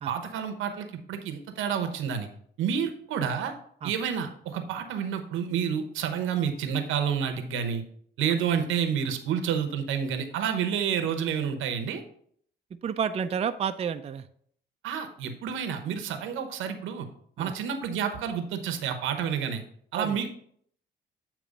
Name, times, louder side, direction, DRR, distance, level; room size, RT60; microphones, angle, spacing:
voice 1, 0.1-2.3 2.6-3.5 3.8-7.8 8.2-12.0 14.8-17.1 17.4-19.6 19.9-20.3, right 7 dB, 90° right, 7 dB, 0.9 m, -29 dB
voice 2, 12.8-14.3 17.4-17.5 19.9-20.2, right 7 dB, 30° right, 9 dB, 0.4 m, -30 dB
8.4 x 3.0 x 5.1 m, 0.63 s
cardioid pair, 90°, 20 cm